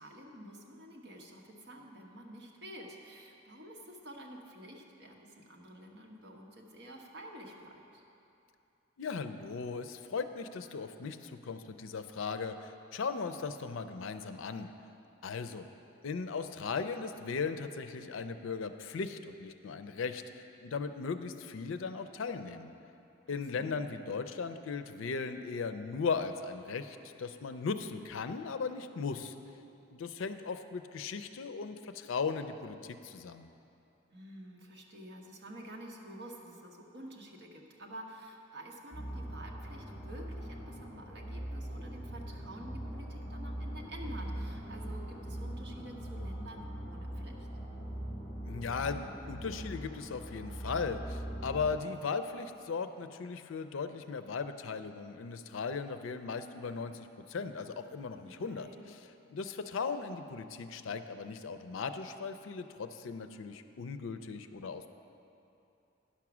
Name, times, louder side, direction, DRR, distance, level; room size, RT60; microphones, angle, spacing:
voice 1, 0.0-8.0 23.3-23.8 34.1-47.4 58.2-58.9, right 1 dB, 55° right, 0 dB, 1.1 m, -49 dB
voice 2, 9.0-14.7 15.2-15.7 16.0-20.2 20.6-22.7 23.3-29.3 29.9-33.5 48.4-65.0, left 5 dB, 80° left, 9 dB, 0.5 m, -37 dB
sound 1, 38.9-51.8, right 1 dB, 20° left, 2.3 m, -41 dB
10.0 x 6.0 x 6.0 m, 2.8 s
head